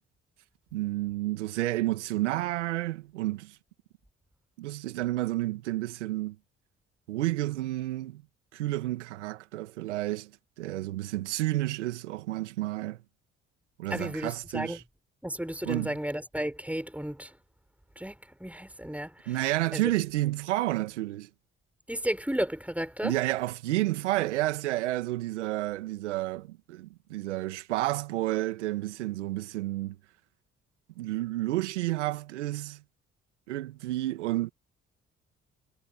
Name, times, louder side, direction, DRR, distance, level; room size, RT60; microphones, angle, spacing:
voice 1, 0.7-3.6 4.6-6.4 7.1-8.2 8.5-10.3 10.6-13.0 13.8-14.8 15.6-16.0 19.3-21.3 23.0-30.0 31.0-32.8 33.5-34.5, right 16 dB, 85° right, 2.3 m, -30 dB
voice 2, 13.9-14.8 15.2-17.3 18.0-19.1 19.7-19.9 21.9-23.1, equal, 5° right, 7.3 m, -33 dB
hypercardioid pair, 45°, 34 cm